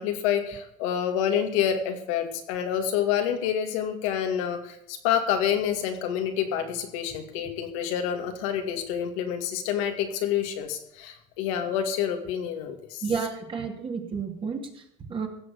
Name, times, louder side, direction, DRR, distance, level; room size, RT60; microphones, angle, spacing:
voice 1, 0.0-13.0, left 9 dB, 90° left, 5 dB, 2.4 m, -28 dB
voice 2, 13.0-15.3, right 5 dB, 30° right, 3 dB, 2.5 m, -31 dB
16.5 x 7.3 x 6.8 m, 0.76 s
supercardioid pair, 110°, 16 cm